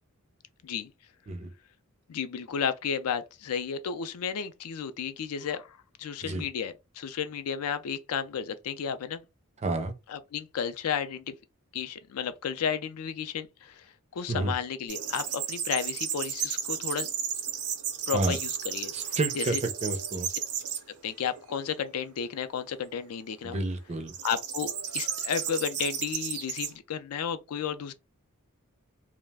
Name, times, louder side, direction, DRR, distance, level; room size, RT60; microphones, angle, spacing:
voice 1, 2.1-9.2 10.1-11.3 11.7-13.9 14.1-17.1 18.1-18.9 19.3-19.6 21.0-23.6 24.2-27.9, left 7 dB, 80° left, 0.4 m, -33 dB
voice 2, 9.6-9.9 14.3-14.5 18.1-18.4 18.9-20.3 23.4-24.1, right 2 dB, 30° right, 0.4 m, -30 dB
sound 1, 14.9-20.8 21.4-21.9 24.1-26.7, right 8 dB, 90° right, 0.6 m, -33 dB
2.3 x 2.0 x 3.3 m
head